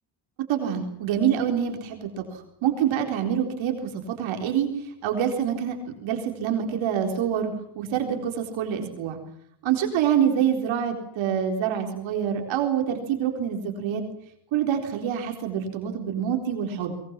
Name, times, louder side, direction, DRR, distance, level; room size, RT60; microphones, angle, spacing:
voice 1, 0.5-4.7 5.0-5.8 6.0-9.2 9.6-14.0 14.5-16.9, right 9 dB, 75° right, 3 dB, 4.1 m, -26 dB
22.5 x 22.0 x 7.4 m, 0.73 s
cardioid pair, 105°, 46 cm